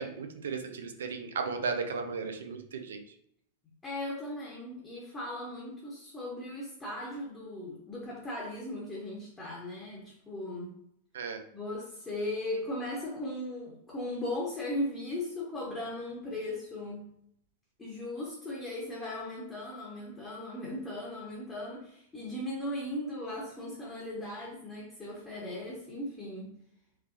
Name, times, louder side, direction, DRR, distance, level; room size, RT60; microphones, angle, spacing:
voice 1, 0.0-3.0 11.1-11.4, right 5 dB, 65° right, 5 dB, 0.6 m, -35 dB
voice 2, 3.8-10.8 11.5-17.1 17.8-26.6, left 1 dB, 15° left, -4 dB, 1.3 m, -37 dB
4.6 x 3.3 x 2.9 m, 0.73 s
figure-of-eight pair, 90°, 0 cm